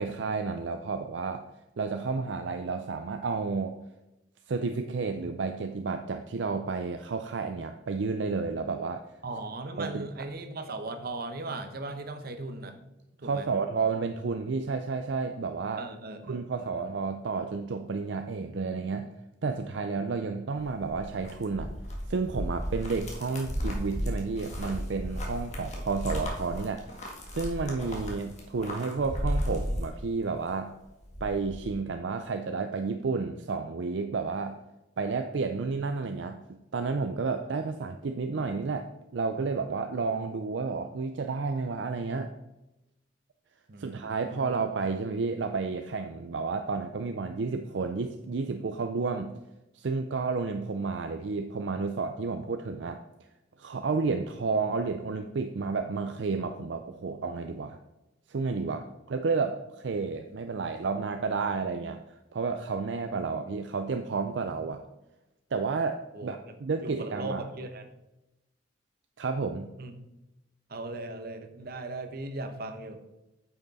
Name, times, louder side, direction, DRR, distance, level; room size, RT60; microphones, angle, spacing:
voice 1, 0.0-1.4 1.8-3.7 4.5-9.0 9.8-10.0 13.2-15.9 16.2-19.1 19.4-21.7 22.1-26.9 27.3-30.7 31.2-34.6 35.0-36.4 36.7-42.3 43.8-49.3 49.7-53.0 53.6-57.8 58.3-64.8 65.5-67.5 69.2-69.7, right 4 dB, 70° right, 7 dB, 0.5 m, -31 dB
voice 2, 9.2-12.7 13.2-13.4 15.8-16.4 43.7-44.6 66.1-66.4 66.8-67.8 69.8-69.9 70.7-73.0, right 2 dB, 55° right, 7 dB, 0.9 m, -38 dB
sound 1, 20.6-30.5 30.8-31.7, equal, 40° left, 1.7 m, -34 dB
8.9 x 5.9 x 4.1 m, 0.94 s
head